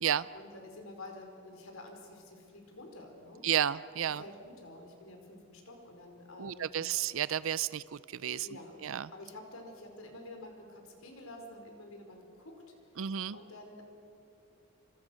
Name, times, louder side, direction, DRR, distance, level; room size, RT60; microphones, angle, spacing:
voice 1, 0.3-3.5 4.2-6.8 8.4-12.6 13.3-13.8, left 2 dB, 70° left, 3 dB, 5.0 m, -49 dB
voice 2, 3.4-4.2 6.4-8.5 8.8-9.1 13.0-13.4, right 9 dB, 65° right, 17 dB, 0.5 m, -32 dB
29.0 x 26.5 x 6.5 m, 2.6 s
head